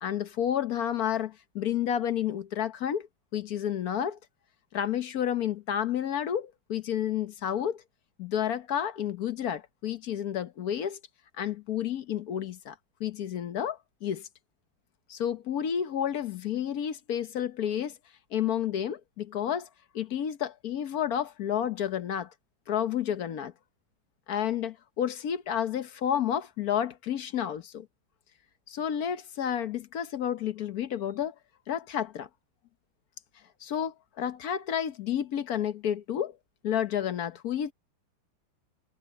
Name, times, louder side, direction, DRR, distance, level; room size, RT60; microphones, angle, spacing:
voice 1, 0.0-3.1 3.3-4.2 4.7-7.8 8.2-11.0 11.4-12.7 13.0-14.3 15.1-17.9 18.3-19.7 19.9-22.3 22.7-23.5 24.3-27.9 28.7-31.3 31.7-32.3 33.6-36.4 36.6-37.7, left 9 dB, 60° left, 1.2 m, -30 dB
omnidirectional pair, 2.1 m